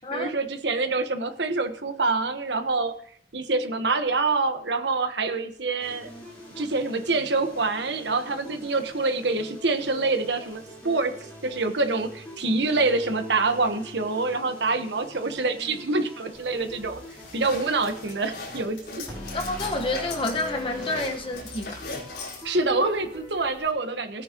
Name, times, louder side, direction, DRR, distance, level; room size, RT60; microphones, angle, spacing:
voice 1, 0.0-2.9 3.3-6.1 6.6-11.1 11.4-17.0 17.3-19.0 22.4-24.2, right 3 dB, 70° right, 1.3 m, -26 dB
sound 1, 5.8-23.6, left 1 dB, 10° left, 6.3 m, -42 dB
sound 2, 16.3-23.7, left 3 dB, 60° left, 4.5 m, -40 dB
voice 2, 19.3-21.8, left 2 dB, 30° left, 1.3 m, -29 dB
18.0 x 9.5 x 3.0 m
head